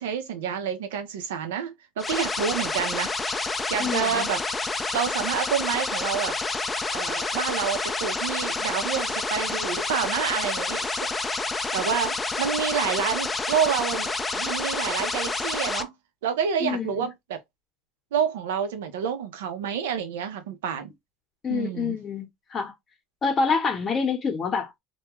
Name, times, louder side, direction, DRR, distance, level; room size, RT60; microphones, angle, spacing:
voice 1, 0.0-3.1 3.7-4.4 4.9-6.4 6.9-10.9 11.7-15.9 16.2-17.4 18.1-20.9 21.5-22.0, right 7 dB, 90° right, 0.6 m, -28 dB
sound 1, 2.0-15.8, left 3 dB, 20° left, 0.4 m, -28 dB
voice 2, 3.8-4.3 16.6-17.1 21.4-22.7 23.2-24.7, left 5 dB, 35° left, 0.9 m, -27 dB
2.2 x 2.2 x 2.9 m
supercardioid pair, 100°, 0 cm